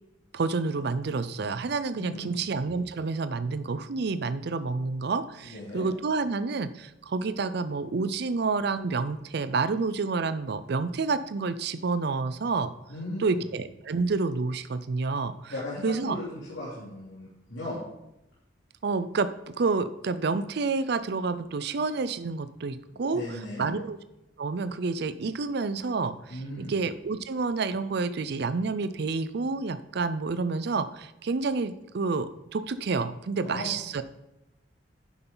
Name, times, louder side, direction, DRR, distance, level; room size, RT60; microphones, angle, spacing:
voice 1, 0.3-12.7 13.2-15.5 15.8-16.2 18.8-24.0 24.4-34.0, right 4 dB, 60° right, 13 dB, 0.5 m, -29 dB
voice 2, 2.0-2.4 5.4-5.9 12.9-13.5 15.5-17.8 23.1-23.7 26.3-26.8 33.4-33.7, left 1 dB, 75° left, -7 dB, 3.0 m, -37 dB
10.0 x 7.7 x 3.9 m, 0.91 s
head